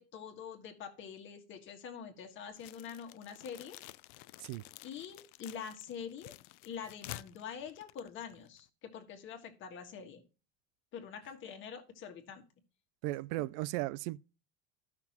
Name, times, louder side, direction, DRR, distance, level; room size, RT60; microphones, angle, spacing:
voice 1, 0.0-3.8 4.8-6.3 6.6-10.2 10.9-12.4, left 7 dB, 40° left, 1.6 m, -45 dB
sound 1, 2.6-8.7, left 19 dB, 70° left, 0.5 m, -51 dB
voice 2, 13.0-14.2, right 18 dB, 75° right, 0.4 m, -36 dB
13.5 x 5.9 x 2.9 m
cardioid pair, 150°, 30 cm